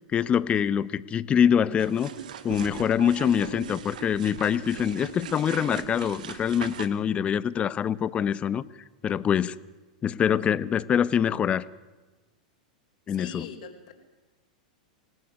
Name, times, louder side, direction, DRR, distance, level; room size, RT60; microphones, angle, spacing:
voice 1, 0.1-2.1 2.4-8.6 9.0-9.5 10.0-11.6 13.1-13.5, left 8 dB, 25° left, 17 dB, 1.0 m, -24 dB
sound 1, 1.8-6.9, right 8 dB, 75° right, 2.0 m, -40 dB
voice 2, 3.2-3.6 13.1-13.9, left 4 dB, 65° left, 7 dB, 4.8 m, -41 dB
25.5 x 19.0 x 9.5 m, 1.2 s
hypercardioid pair, 105°, 4 cm